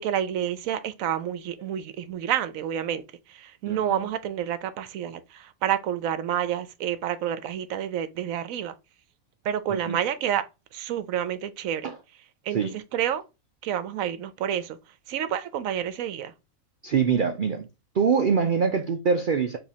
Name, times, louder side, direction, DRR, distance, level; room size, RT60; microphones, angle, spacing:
voice 1, 0.0-8.7 9.4-11.9 12.4-13.2 13.6-14.8 15.1-16.3, right 10 dB, 75° right, 1.0 m, -29 dB
voice 2, 3.7-4.1 9.7-10.0 11.8-12.0 12.5-12.8 16.8-17.7 17.9-19.6, right 6 dB, 55° right, 0.5 m, -24 dB
5.1 x 3.1 x 2.8 m
omnidirectional pair, 1.5 m